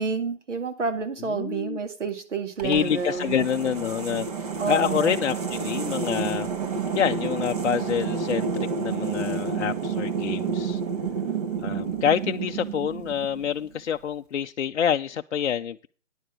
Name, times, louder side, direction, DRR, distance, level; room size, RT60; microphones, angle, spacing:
voice 1, 0.0-3.5 4.6-5.2, right 5 dB, 65° right, 2.2 m, -29 dB
voice 2, 1.3-1.8 2.6-6.5 6.9-10.8 11.6-15.9, left 8 dB, 60° left, 0.5 m, -27 dB
sound 1, 2.6-13.7, right 5 dB, 30° right, 1.2 m, -30 dB
10.0 x 6.6 x 6.1 m
hypercardioid pair, 165°, 39 cm